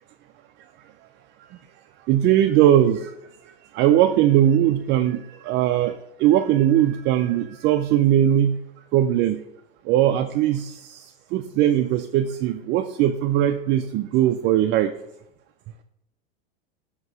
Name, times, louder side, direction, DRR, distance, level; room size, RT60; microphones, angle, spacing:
voice 1, 2.1-3.1 3.7-5.9 6.2-8.6 8.9-9.4 9.9-11.0 11.3-14.9, right 11 dB, 40° right, 7 dB, 0.4 m, -20 dB
7.7 x 2.9 x 6.0 m, 0.82 s
hypercardioid pair, 105°, 29 cm